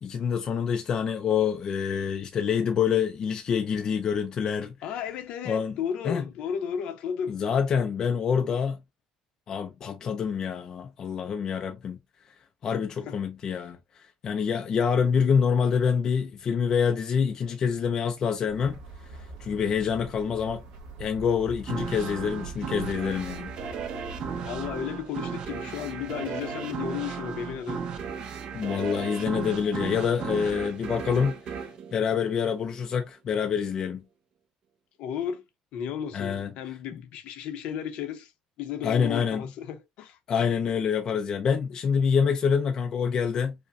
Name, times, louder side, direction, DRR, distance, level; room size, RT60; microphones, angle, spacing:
voice 1, 0.0-4.7 5.4-5.8 6.0-6.3 7.3-8.8 9.5-12.0 12.6-20.6 21.0-23.5 28.5-31.6 31.9-34.0 36.1-36.5 38.8-39.4 40.3-43.5, left 6 dB, 30° left, 0.4 m, -26 dB
voice 2, 4.8-7.4 13.0-13.2 24.4-27.8 35.0-35.4 35.7-38.3 38.6-40.2, left 8 dB, 60° left, 0.7 m, -34 dB
sound 1, 18.5-24.8, right 3 dB, 70° right, 1.7 m, -43 dB
sound 2, 21.7-32.9, right 6 dB, 45° right, 0.6 m, -35 dB
4.9 x 2.1 x 2.5 m
cardioid pair, 160°, 2 cm